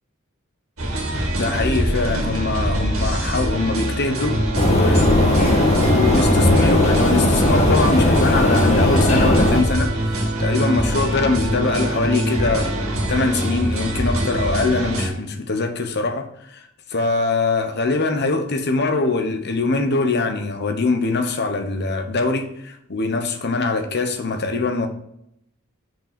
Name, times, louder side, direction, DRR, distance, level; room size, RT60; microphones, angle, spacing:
sound 1, 0.8-15.1, right 1 dB, 75° right, 2.1 m, -23 dB
voice 1, 1.4-4.4 4.7-12.8 13.1-16.6 16.9-24.9, left 3 dB, 55° left, 1.0 m, -23 dB
sound 2, 4.5-9.6, left 1 dB, 30° left, 1.2 m, -17 dB
6.0 x 5.2 x 5.2 m
head